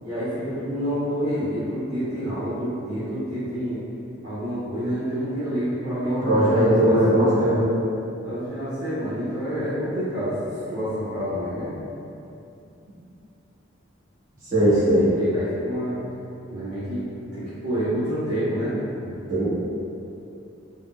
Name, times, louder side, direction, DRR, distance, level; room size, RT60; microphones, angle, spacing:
voice 1, 0.0-3.8 4.2-7.6 8.2-11.7 14.7-16.0 16.5-17.0 17.3-18.7 19.0-19.2, equal, 80° right, -16 dB, 0.9 m, -28 dB
voice 2, 6.0-7.7 14.5-15.1 19.3-19.5, equal, 40° right, -12 dB, 1.0 m, -19 dB
3.5 x 2.1 x 2.3 m, 2.8 s
head